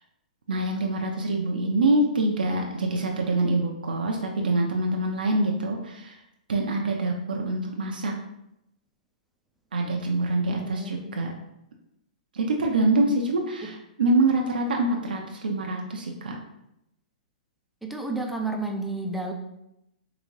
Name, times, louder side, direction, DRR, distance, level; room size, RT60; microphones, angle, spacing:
voice 1, 0.5-6.2 6.5-8.1 9.7-11.3 12.3-16.4, right 2 dB, 90° right, 1 dB, 0.6 m, -25 dB
voice 2, 10.5-11.2 13.6-13.7 17.8-19.3, right 2 dB, ahead, 2 dB, 0.4 m, -32 dB
3.9 x 3.4 x 3.2 m, 0.83 s
hypercardioid pair, 150°, 5 cm